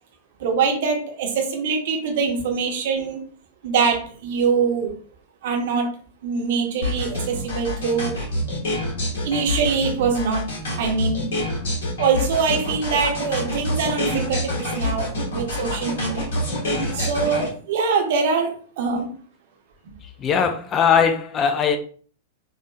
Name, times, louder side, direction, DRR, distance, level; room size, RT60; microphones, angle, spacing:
voice 1, 0.4-3.2 3.6-4.9 5.4-5.9 6.2-8.1 9.2-10.4 10.8-11.2 12.0-16.3 16.9-19.1, right 5 dB, 55° right, 0.8 m, -23 dB
sound 1, 6.8-17.5, left 1 dB, 60° left, 1.3 m, -26 dB
voice 2, 20.2-21.8, left 7 dB, 25° left, 0.4 m, -19 dB
4.9 x 2.4 x 2.2 m
figure-of-eight pair, 95°, 0 cm